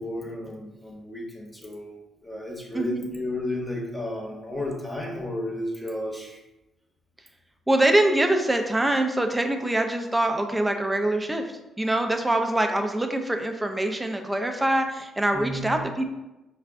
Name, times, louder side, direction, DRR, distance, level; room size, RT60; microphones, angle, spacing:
voice 1, 0.0-2.0 2.2-6.4 15.3-15.9, left 1 dB, 10° left, 0 dB, 1.0 m, -33 dB
voice 2, 2.7-3.1 7.7-15.8, right 1 dB, 10° right, 5 dB, 0.5 m, -24 dB
4.8 x 2.3 x 3.5 m, 1.0 s
cardioid pair, 90°, 0 cm